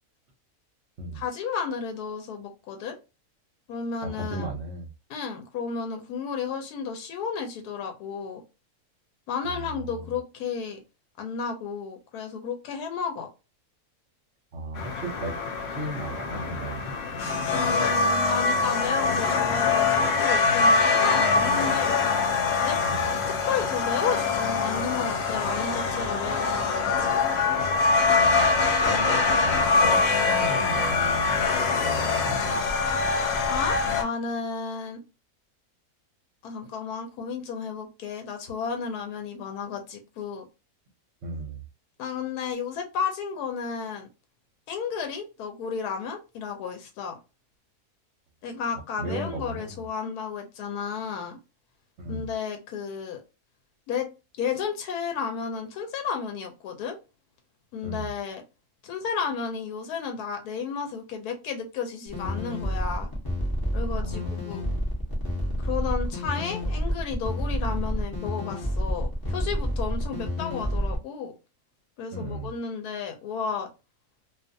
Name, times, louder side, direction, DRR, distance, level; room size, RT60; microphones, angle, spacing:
voice 1, 1.1-3.0 3.7-4.5 5.1-8.4 9.3-10.8 11.2-13.3 17.5-22.0 22.6-22.8 23.5-27.2 33.5-35.0 36.4-40.4 42.0-44.1 44.7-47.2 48.4-51.4 52.1-53.2 53.9-54.1 54.4-57.0 57.7-58.4 58.8-63.1 63.7-64.6 65.6-71.3 72.0-73.7, left 6 dB, 90° left, 4 dB, 1.1 m, -32 dB
voice 2, 4.0-4.9 9.4-10.1 14.5-15.3 15.7-16.9 22.8-23.0 27.7-27.9 28.2-31.5 31.8-32.6 41.2-41.6 49.0-49.8 52.0-52.3 57.8-58.1 64.0-64.7 72.1-72.5, right 2 dB, 60° right, 0 dB, 0.8 m, -35 dB
sound 1, 14.8-34.0, left 4 dB, 70° left, 0.6 m, -24 dB
sound 2, 62.1-71.0, equal, 25° left, 0.5 m, -29 dB
2.4 x 2.4 x 2.5 m, 0.29 s
omnidirectional pair, 1.6 m